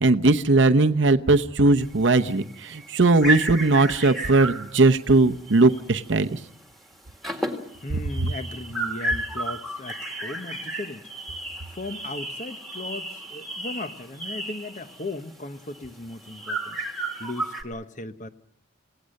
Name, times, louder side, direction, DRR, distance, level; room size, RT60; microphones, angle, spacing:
voice 1, 0.0-6.4, right 2 dB, 70° right, 8 dB, 0.8 m, -19 dB
sound 1, 1.8-6.2 6.4-6.7 7.0-17.6, right 2 dB, ahead, 2.0 m, -33 dB
voice 2, 7.8-11.1 11.7-18.3, left 2 dB, 40° left, 10 dB, 1.0 m, -37 dB
29.0 x 17.5 x 6.5 m, 0.71 s
head